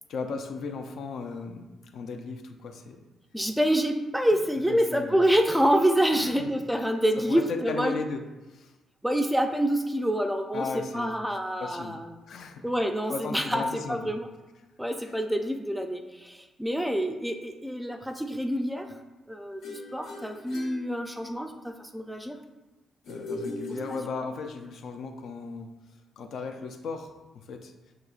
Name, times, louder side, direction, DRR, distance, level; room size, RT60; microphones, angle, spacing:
voice 1, 0.1-3.0 4.7-5.2 6.1-6.5 7.2-8.7 10.5-11.1 11.6-12.0 12.3-12.7 13.1-14.1 15.0-15.2 23.1-25.7 26.2-27.7, left 4 dB, 70° left, 5 dB, 0.4 m, -36 dB
voice 2, 3.3-7.9 9.0-12.1 12.6-13.6 13.9-14.3 14.8-18.9 19.3-22.4, equal, ahead, 5 dB, 0.3 m, -27 dB
sound 1, 19.6-21.6 23.0-24.6, left 2 dB, 85° left, 1.2 m, -39 dB
6.2 x 2.9 x 2.4 m, 1.1 s
cardioid pair, 110°, 0 cm